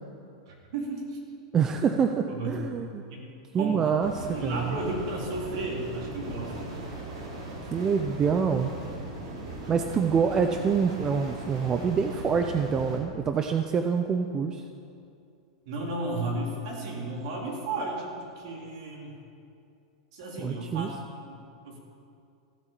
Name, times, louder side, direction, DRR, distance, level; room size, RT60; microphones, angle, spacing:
voice 1, 0.5-1.2 2.1-2.6 3.1-3.9 4.3-6.5 15.7-19.2 20.1-20.9 21.3-21.8, right 2 dB, 55° right, -1 dB, 3.7 m, -34 dB
voice 2, 1.5-3.0 3.5-4.8 7.7-8.7 9.7-14.6 20.4-20.9, right 6 dB, 15° right, 6 dB, 0.5 m, -26 dB
sound 1, 4.0-13.0, right 2 dB, 75° right, 4.3 m, -38 dB
15.0 x 10.5 x 7.4 m, 2.5 s
supercardioid pair, 170°, 3 cm